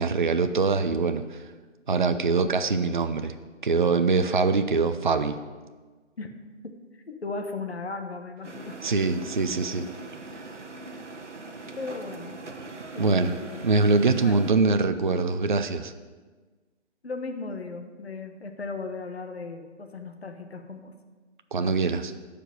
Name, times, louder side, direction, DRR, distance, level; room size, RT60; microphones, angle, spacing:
voice 1, 0.0-1.4 1.9-3.3 3.6-5.4 8.8-9.9 13.0-13.4 13.6-15.9 21.5-22.1, right 4 dB, 45° right, 9 dB, 0.5 m, -23 dB
voice 2, 2.4-2.7 6.2-6.3 6.9-8.8 9.1-9.2 11.8-12.4 12.9-13.7 14.2-14.3 17.0-20.9, left 4 dB, 60° left, 5 dB, 1.2 m, -36 dB
sound 1, 8.4-14.5, right 3 dB, 80° right, 1.0 m, -41 dB
9.9 x 5.1 x 7.8 m, 1.4 s
figure-of-eight pair, 150°, 35 cm